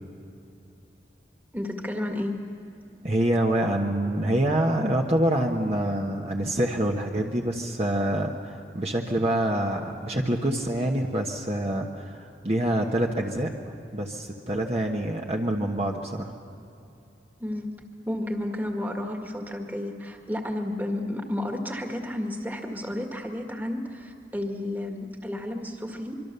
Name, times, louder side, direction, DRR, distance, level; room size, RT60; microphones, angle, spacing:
voice 1, 1.5-2.4 17.4-17.7 18.1-26.2, left 1 dB, 10° right, 3 dB, 1.8 m, -32 dB
voice 2, 3.0-16.3, right 1 dB, 35° right, 1 dB, 1.2 m, -26 dB
25.0 x 24.5 x 6.9 m, 2.8 s
head